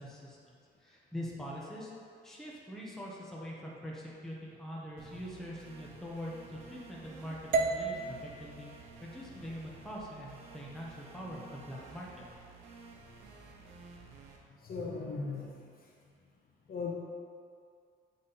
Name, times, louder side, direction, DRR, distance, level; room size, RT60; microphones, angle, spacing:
voice 1, 0.0-1.9 2.2-8.7 9.0-12.2, equal, ahead, -5 dB, 1.2 m, -43 dB
sound 1, 5.0-14.4, right 4 dB, 90° right, 0.8 m, -53 dB
sound 2, 7.5-11.7, right 4 dB, 45° right, 0.5 m, -37 dB
voice 2, 14.6-15.6 16.7-16.9, left 4 dB, 50° left, -4 dB, 1.3 m, -37 dB
7.8 x 3.6 x 4.2 m, 2.2 s
cardioid pair, 90°, 20 cm